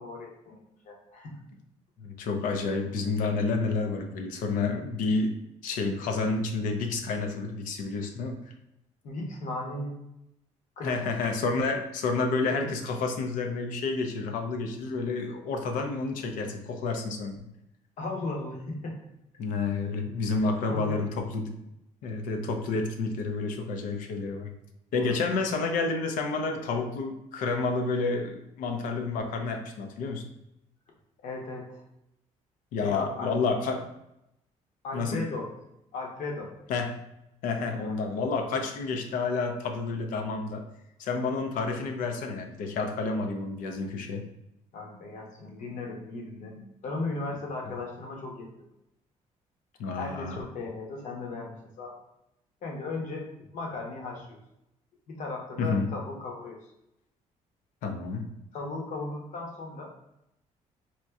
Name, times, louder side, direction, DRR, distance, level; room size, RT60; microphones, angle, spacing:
voice 1, 0.0-1.4 9.0-10.0 10.8-11.0 12.5-12.7 18.0-19.0 20.4-21.2 25.0-25.2 31.2-31.8 32.8-33.3 34.8-35.5 35.9-36.5 37.8-38.1 44.7-48.7 50.0-52.0 52.6-54.4 55.1-56.7 58.5-59.9, left 3 dB, 65° left, 0 dB, 0.9 m, -37 dB
voice 2, 2.0-5.4 5.6-8.4 10.8-17.5 19.4-21.5 22.0-24.5 24.9-30.2 32.7-33.8 34.9-35.2 36.7-36.9 37.4-40.6 41.0-44.2 49.8-50.4 55.6-55.9 57.8-58.3, left 3 dB, 85° left, 4 dB, 0.5 m, -29 dB
4.2 x 2.6 x 2.3 m, 0.85 s
cardioid pair, 105°, 14 cm